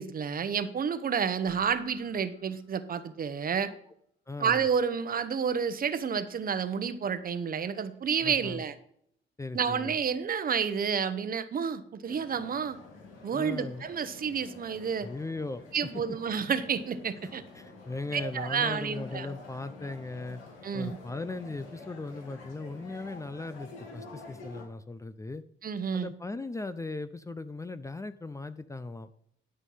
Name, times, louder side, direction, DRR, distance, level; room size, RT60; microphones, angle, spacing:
voice 1, 0.0-3.7 4.4-8.7 9.5-12.8 13.2-15.1 15.7-17.4 18.1-19.3 20.6-21.0 25.6-26.1, right 6 dB, 45° right, 12 dB, 1.0 m, -30 dB
sound 1, 1.5-3.0, left 3 dB, 40° left, 2.7 m, -55 dB
voice 2, 4.3-4.6 8.2-8.6 9.4-10.0 13.3-13.9 15.0-15.7 16.1-16.2 17.2-17.3 17.5-20.4 20.7-25.4 25.9-29.1, left 3 dB, 15° left, 13 dB, 0.5 m, -38 dB
sound 2, 12.0-24.6, left 3 dB, 90° left, 3.0 m, -48 dB
11.5 x 5.5 x 5.7 m, 0.69 s
cardioid pair, 90°, 20 cm